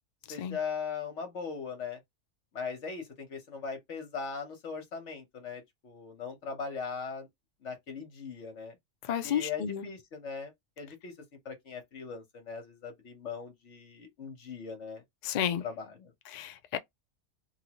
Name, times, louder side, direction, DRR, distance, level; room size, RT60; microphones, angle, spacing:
voice 1, 0.3-2.0 2.5-7.3 7.6-8.8 9.2-11.1 11.4-15.0 15.6-16.1, left 5 dB, 65° left, 1.4 m, -39 dB
voice 2, 9.0-9.9 15.2-15.7 16.3-16.8, left 9 dB, 85° left, 0.3 m, -32 dB
2.9 x 2.6 x 2.9 m
omnidirectional pair, 1.3 m